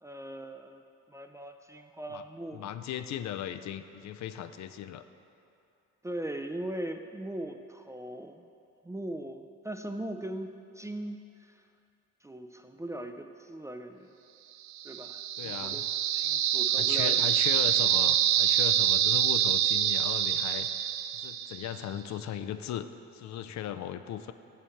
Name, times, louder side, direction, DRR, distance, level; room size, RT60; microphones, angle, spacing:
voice 1, 0.0-0.8 1.1-2.7 6.0-8.4 8.8-11.6 12.2-14.1 14.8-17.3, right 1 dB, 10° right, 5 dB, 0.3 m, -40 dB
voice 2, 2.5-5.0 15.4-15.8 16.8-24.3, left 10 dB, 65° left, 11 dB, 0.4 m, -37 dB
sound 1, 14.8-21.7, right 10 dB, 70° right, 0.4 m, -26 dB
6.3 x 5.7 x 7.1 m, 2.7 s
cardioid pair, 90°, 30 cm